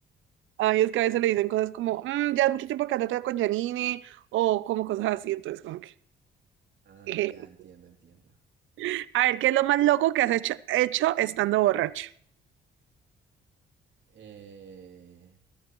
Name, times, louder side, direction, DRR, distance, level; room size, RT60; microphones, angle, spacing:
voice 1, 0.6-5.9 7.1-7.3 8.8-12.1, right 15 dB, 80° right, 0.5 m, -25 dB
voice 2, 6.8-8.3 14.1-15.4, right 7 dB, 65° right, 3.1 m, -50 dB
15.0 x 13.5 x 3.1 m
cardioid pair, 90°, 20 cm